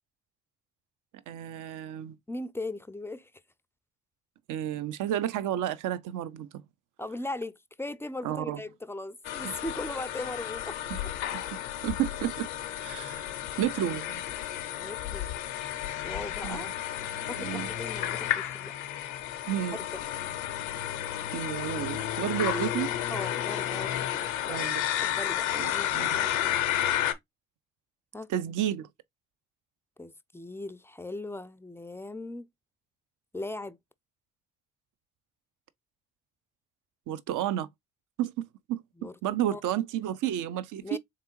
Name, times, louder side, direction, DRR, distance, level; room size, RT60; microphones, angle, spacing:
voice 1, 1.3-2.2 4.5-6.5 8.2-8.6 9.4-9.5 10.9-11.0 11.3-12.5 12.8-13.3 13.6-14.2 16.4-16.6 17.4-17.7 19.5-19.8 21.3-22.9 24.5-24.8 25.6-26.2 28.3-28.9 37.1-37.7 38.2-38.8 39.2-41.0, right 11 dB, 65° right, 0.5 m, -31 dB
voice 2, 2.3-3.3 7.0-10.8 12.9-13.0 14.8-15.3 16.0-16.7 17.0-18.7 19.7-19.8 23.1-24.7 25.0-26.6 28.1-28.3 30.0-32.5 33.3-33.8 39.0-39.2 39.5-39.6 40.8-41.0, left 2 dB, 10° left, 0.3 m, -39 dB
sound 1, 9.2-27.1, left 11 dB, 90° left, 0.6 m, -32 dB
3.6 x 3.3 x 2.9 m
hypercardioid pair, 45°, 34 cm